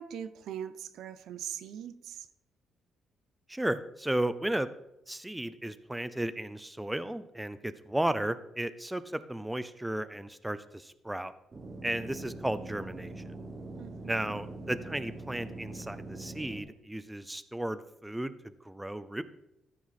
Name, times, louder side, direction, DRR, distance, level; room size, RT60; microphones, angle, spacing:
voice 1, 0.0-2.3 13.8-14.4, right 9 dB, 80° right, 12 dB, 0.6 m, -41 dB
voice 2, 3.5-4.7 5.1-11.3 11.8-13.3 14.0-19.2, right 1 dB, 10° right, 13 dB, 0.5 m, -34 dB
sound 1, 11.5-16.6, right 2 dB, 30° right, 1.3 m, -43 dB
13.5 x 6.1 x 4.2 m, 0.86 s
cardioid pair, 90°, 0 cm